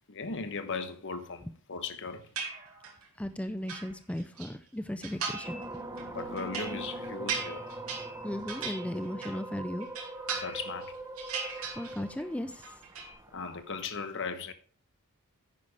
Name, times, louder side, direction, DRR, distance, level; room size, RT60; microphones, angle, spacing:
voice 1, 0.1-2.3 6.1-7.6 10.3-11.0 13.3-14.5, left 4 dB, 55° left, 1.1 m, -37 dB
sound 1, 2.4-3.1 3.4-4.5 5.0-5.7 6.0-9.5 9.8-10.9 11.2-12.2 12.5-13.1, right 5 dB, 75° right, 2.8 m, -38 dB
voice 2, 3.2-5.6 8.2-9.9 11.8-12.6, left 1 dB, 5° left, 0.5 m, -36 dB
sound 2, 5.4-13.9, right 2 dB, 15° right, 0.9 m, -42 dB
10.5 x 9.5 x 3.4 m
head